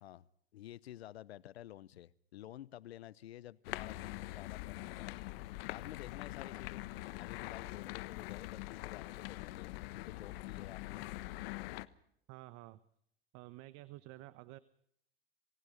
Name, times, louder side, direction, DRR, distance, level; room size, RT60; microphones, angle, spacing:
voice 1, 0.0-5.1 5.6-6.9 7.2-11.2, left 13 dB, 80° left, 21 dB, 0.9 m, -51 dB
sound 1, 3.6-11.9, left 18 dB, 65° left, 1.2 m, -44 dB
voice 2, 12.3-12.8 13.3-14.6, right 18 dB, 55° right, 16 dB, 1.1 m, -51 dB
28.0 x 18.5 x 5.2 m, 0.70 s
hypercardioid pair, 95°, 31 cm